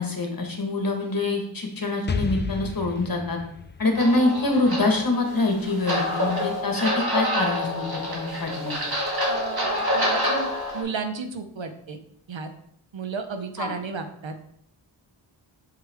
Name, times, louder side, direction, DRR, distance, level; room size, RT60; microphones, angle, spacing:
voice 1, 0.0-3.4 3.8-8.8 13.6-13.7, left 2 dB, 45° left, 3 dB, 1.4 m, -25 dB
Explosion, 2.1-5.8, left 5 dB, 25° left, 0.4 m, -33 dB
sound 1, 3.9-10.8, equal, 50° right, 1.9 m, -27 dB
voice 2, 9.3-10.5 10.7-12.0 12.3-12.5 12.9-14.3, right 4 dB, 70° right, 7 dB, 0.9 m, -32 dB
6.8 x 4.5 x 3.5 m, 0.67 s
cardioid pair, 45°, 48 cm